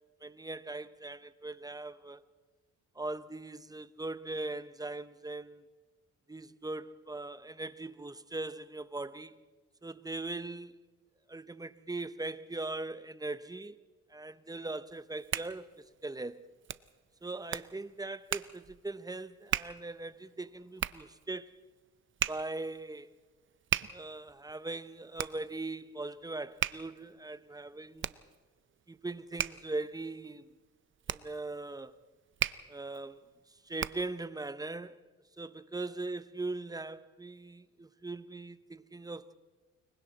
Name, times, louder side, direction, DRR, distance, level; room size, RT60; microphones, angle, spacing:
voice 1, 0.2-2.2 3.0-5.6 6.3-9.3 9.8-10.8 11.3-13.8 14.1-16.4 17.2-21.5 22.3-23.1 23.9-28.1 28.9-30.4 31.1-31.9 32.7-33.2 33.7-35.0 35.4-39.3, right 2 dB, 10° right, 0.8 m, -40 dB
Hands, 14.9-34.2, right 9 dB, 40° right, 0.6 m, -39 dB
29.0 x 23.0 x 4.1 m
cardioid pair, 90°, 30 cm